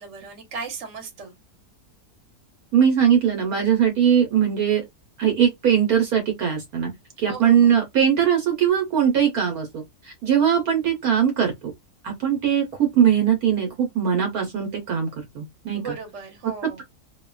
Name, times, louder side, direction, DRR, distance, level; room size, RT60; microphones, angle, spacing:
voice 1, 0.0-1.3 7.3-7.7 15.7-16.8, right 4 dB, 50° right, 1.2 m, -36 dB
voice 2, 2.7-4.8 5.2-6.9 7.2-11.5 12.0-15.9, right 8 dB, 70° right, 1.3 m, -20 dB
2.8 x 2.2 x 2.3 m
omnidirectional pair, 1.7 m